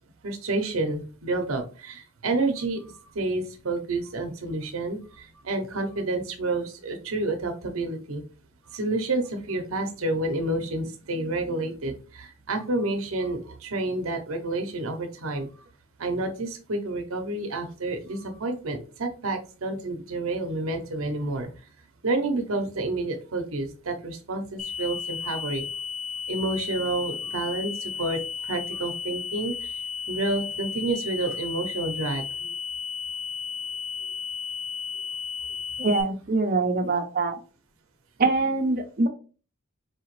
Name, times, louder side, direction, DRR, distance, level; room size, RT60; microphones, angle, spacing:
voice 1, 0.2-8.2 8.7-15.5 16.0-21.5 22.0-25.6 26.3-29.5 30.1-32.2, right 2 dB, 80° right, 6 dB, 0.7 m, -29 dB
sound 1, 24.6-36.0, left 6 dB, 30° left, 0.9 m, -34 dB
voice 2, 35.8-37.4 38.2-39.1, right 3 dB, 45° right, 5 dB, 0.6 m, -24 dB
4.6 x 2.8 x 3.0 m, 0.36 s
head